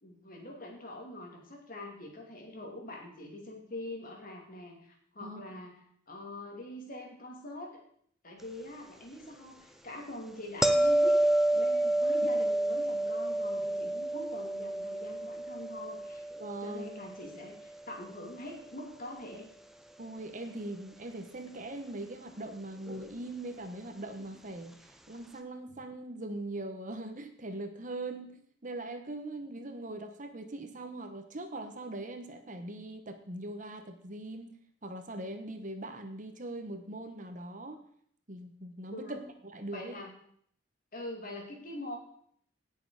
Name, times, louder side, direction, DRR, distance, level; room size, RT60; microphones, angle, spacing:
voice 1, 0.0-5.8 6.1-7.8 8.2-11.2 11.5-16.2 16.6-19.5 38.9-39.2 39.7-40.1 40.9-42.0, left 1 dB, 50° left, 1 dB, 2.9 m, -44 dB
voice 2, 5.2-5.6 16.4-16.9 20.0-34.5 34.8-37.8 38.3-40.0, right 2 dB, 45° right, 7 dB, 1.3 m, -41 dB
sound 1, 10.6-17.6 22.9-23.0, right 1 dB, ahead, 0.8 m, -29 dB
17.5 x 6.7 x 5.0 m, 0.65 s
head